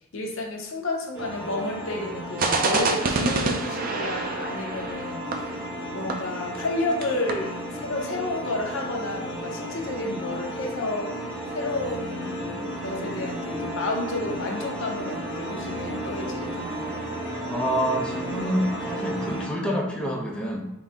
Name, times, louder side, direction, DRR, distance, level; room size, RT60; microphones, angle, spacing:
voice 1, 0.1-5.5 5.9-11.1 11.5-17.0, left 2 dB, 70° left, 1 dB, 0.8 m, -31 dB
sound 1, 1.1-19.5, equal, 15° right, 1.5 m, -33 dB
sound 2, 2.4-6.8 7.0-7.1 7.3-7.5, right 3 dB, 45° right, 0.5 m, -27 dB
voice 2, 17.5-20.6, equal, 5° left, -3 dB, 0.7 m, -27 dB
3.9 x 2.7 x 3.6 m, 0.92 s
head